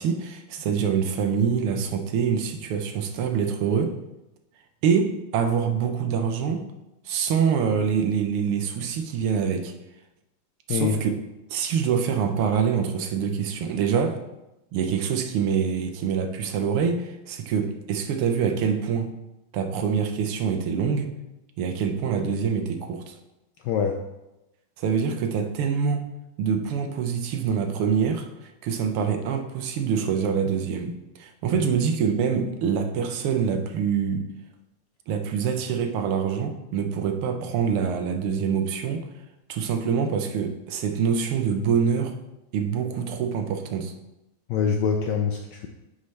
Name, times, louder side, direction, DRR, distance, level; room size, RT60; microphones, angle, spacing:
voice 1, 0.0-3.9 4.8-6.6 7.1-9.7 10.7-11.1 11.5-14.2 14.7-19.1 19.5-21.1 21.6-23.2 24.8-26.0 26.4-34.3 35.1-39.1 39.5-42.1 42.5-43.9, right 6 dB, 85° right, 5 dB, 1.7 m, -25 dB
voice 2, 10.7-11.0 23.6-24.0 44.5-45.7, left 6 dB, 80° left, 3 dB, 1.0 m, -24 dB
9.9 x 4.9 x 3.2 m, 0.95 s
omnidirectional pair, 2.4 m